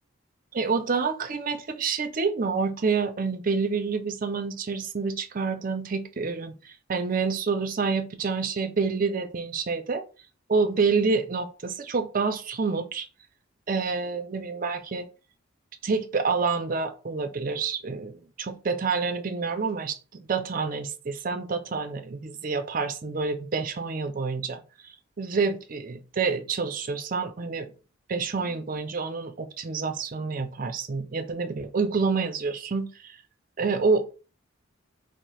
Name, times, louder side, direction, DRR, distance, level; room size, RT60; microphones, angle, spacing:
voice 1, 0.5-10.0 10.5-13.1 13.7-15.1 15.8-24.6 25.2-27.7 28.1-33.1 33.6-34.1, right 4 dB, 40° right, 0.5 m, -28 dB
4.7 x 2.1 x 4.1 m
head